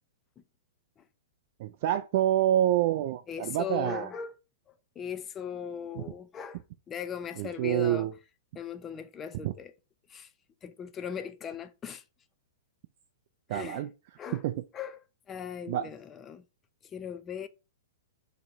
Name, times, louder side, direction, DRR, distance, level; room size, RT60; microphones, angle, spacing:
voice 1, 1.6-4.1 6.0-6.1 7.4-8.1 9.4-9.5 13.5-13.9 14.3-14.6 15.7-15.9, right 12 dB, 50° right, 0.3 m, -27 dB
voice 2, 3.3-4.4 5.0-6.6 6.9-8.1 8.6-9.7 10.1-10.3 10.6-12.0 13.5-13.8 14.2-14.4 14.7-16.4 16.9-17.5, left 7 dB, 20° left, 0.4 m, -38 dB
2.9 x 2.5 x 4.3 m
hypercardioid pair, 140°, 0 cm